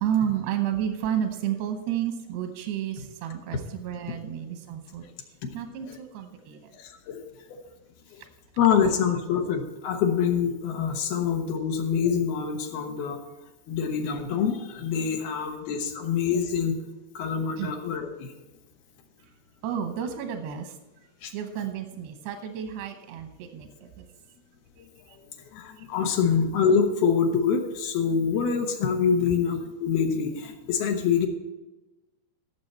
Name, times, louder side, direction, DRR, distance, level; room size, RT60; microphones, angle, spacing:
voice 1, 0.0-5.0 5.5-6.7 17.6-17.7 19.6-20.8 21.3-24.1 25.1-25.2, right 9 dB, 85° right, 6 dB, 3.0 m, -31 dB
voice 2, 6.7-7.2 7.5-7.6 8.6-13.2 13.7-16.8 17.1-18.3 21.2-21.3 25.5-31.3, left 7 dB, 75° left, 3 dB, 2.9 m, -25 dB
15.0 x 7.0 x 4.3 m, 1.1 s
omnidirectional pair, 4.6 m